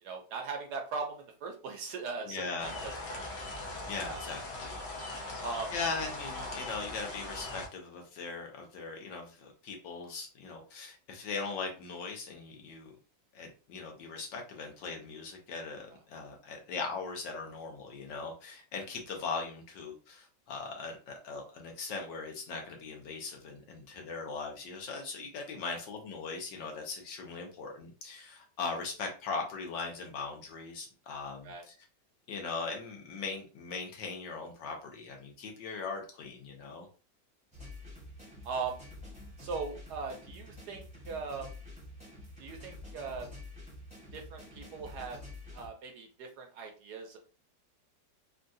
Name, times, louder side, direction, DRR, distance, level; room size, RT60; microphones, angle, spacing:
voice 1, 0.0-3.3 4.0-4.2 5.4-5.7 15.9-16.0 25.6-25.8 31.4-31.6 38.4-38.8 39.4-41.5 42.4-43.3 44.1-45.2 45.5-47.2, right 4 dB, 70° right, 2 dB, 1.1 m, -39 dB
voice 2, 2.3-2.7 3.9-4.8 5.2-5.4 5.7-12.9 13.3-31.5 32.3-36.9, left 4 dB, 75° left, 2 dB, 1.5 m, -40 dB
sound 1, 2.6-7.7, left 2 dB, 60° left, 0.6 m, -40 dB
sound 2, 37.5-45.7, left 2 dB, 5° right, 0.8 m, -48 dB
3.7 x 2.3 x 2.6 m, 0.35 s
omnidirectional pair, 2.0 m